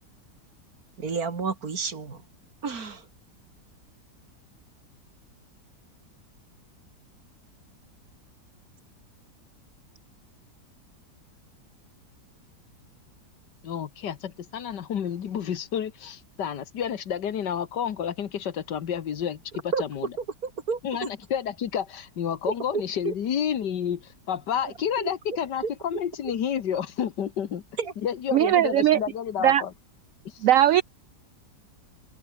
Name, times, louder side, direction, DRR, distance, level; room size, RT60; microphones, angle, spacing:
voice 1, 1.0-2.2 2.6-3.0 19.7-19.8 20.2-21.1 22.5-23.1 25.0-25.1 25.9-26.0 27.8-27.9 30.8-30.9, right 5 dB, 55° right, 2.7 m, -31 dB
voice 2, 13.6-20.1 20.8-27.6 28.0-29.7 30.3-30.4, left 8 dB, 75° left, 1.9 m, -30 dB
voice 3, 28.3-29.0 29.4-29.6 30.4-30.8, right 12 dB, 75° right, 0.7 m, -19 dB
open air
omnidirectional pair, 1.9 m